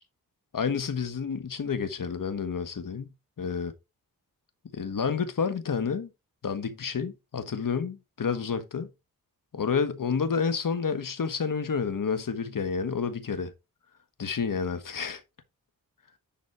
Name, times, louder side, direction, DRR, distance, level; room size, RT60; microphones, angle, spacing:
voice 1, 0.5-3.1 3.4-3.7 4.7-6.1 6.4-8.9 9.5-13.5 14.2-15.2, left 6 dB, 60° left, 1.5 m, -29 dB
10.5 x 4.2 x 4.4 m
cardioid pair, 65°, 37 cm